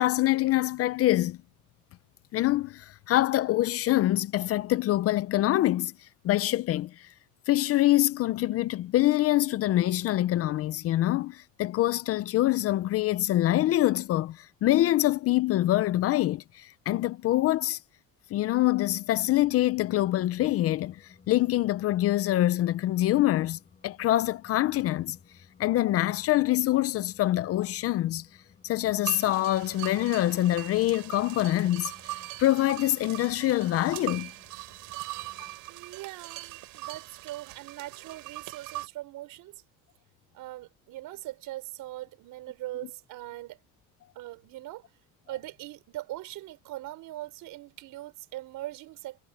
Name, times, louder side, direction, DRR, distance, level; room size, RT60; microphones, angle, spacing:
voice 1, 0.0-1.4 2.3-5.9 6.2-7.1 7.5-17.8 18.3-25.2 25.6-28.3 28.6-31.9 32.4-34.3 35.4-35.5, left 15 dB, 45° left, 0.5 m, -25 dB
sound 1, 19.0-35.6, left 6 dB, 25° left, 7.3 m, -58 dB
sound 2, 29.0-38.9, right 19 dB, 85° right, 3.7 m, -41 dB
voice 2, 35.7-39.6 40.3-43.6 44.1-44.9 45.3-49.3, right 16 dB, 65° right, 5.2 m, -41 dB
cardioid pair, 170°, 34 cm